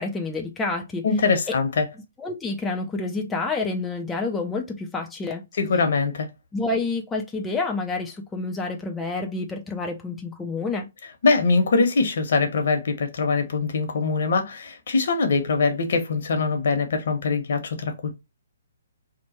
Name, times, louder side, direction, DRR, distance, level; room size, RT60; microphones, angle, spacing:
voice 1, 0.0-1.1 2.2-5.4 6.5-10.9, left 3 dB, 10° left, 0.4 m, -28 dB
voice 2, 1.0-1.9 5.6-6.3 11.2-18.2, left 4 dB, 65° left, 1.0 m, -22 dB
3.0 x 2.1 x 4.1 m
hypercardioid pair, 150°, 0 cm